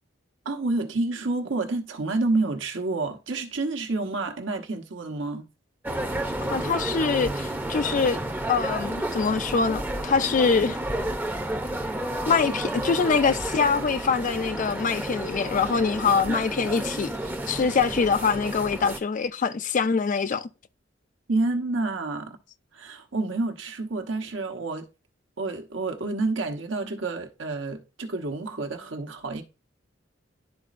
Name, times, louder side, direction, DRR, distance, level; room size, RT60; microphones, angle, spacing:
voice 1, 0.4-5.5 21.3-22.4 22.7-24.9 25.4-29.4, right 3 dB, 80° right, 1.1 m, -29 dB
sound 1, 5.8-19.0, right 1 dB, 10° right, 0.7 m, -31 dB
voice 2, 6.5-8.2 8.5-10.8 12.3-17.1 17.5-20.5, left 5 dB, 40° left, 0.4 m, -24 dB
11.5 x 4.1 x 2.5 m
head